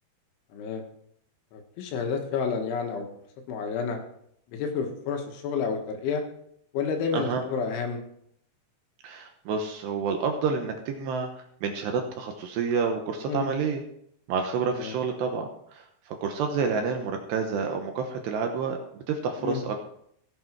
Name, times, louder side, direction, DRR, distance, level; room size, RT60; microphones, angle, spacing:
voice 1, 0.5-0.8 1.5-3.0 3.5-4.0 4.5-6.2 6.7-8.0 13.3-13.5 14.8-15.0 19.4-19.6, left 6 dB, 75° left, 3 dB, 3.8 m, -30 dB
voice 2, 9.0-11.3 11.6-13.8 14.3-19.8, right 5 dB, 75° right, 4 dB, 2.8 m, -29 dB
16.0 x 8.5 x 4.6 m, 0.70 s
omnidirectional pair, 5.8 m